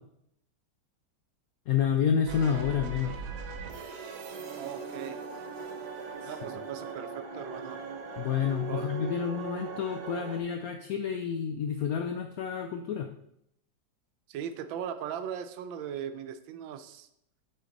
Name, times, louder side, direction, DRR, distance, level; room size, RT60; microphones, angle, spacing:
voice 1, 1.7-3.1 6.2-6.3 8.2-13.1, left 8 dB, 80° left, 5 dB, 0.8 m, -29 dB
sound 1, 2.3-10.4, right 5 dB, 65° right, 1.4 m, -39 dB
voice 2, 4.6-5.2 6.3-7.8 8.7-8.9 14.3-17.1, right 8 dB, 85° right, 10 dB, 1.4 m, -38 dB
8.1 x 4.5 x 3.9 m, 0.76 s
omnidirectional pair, 2.1 m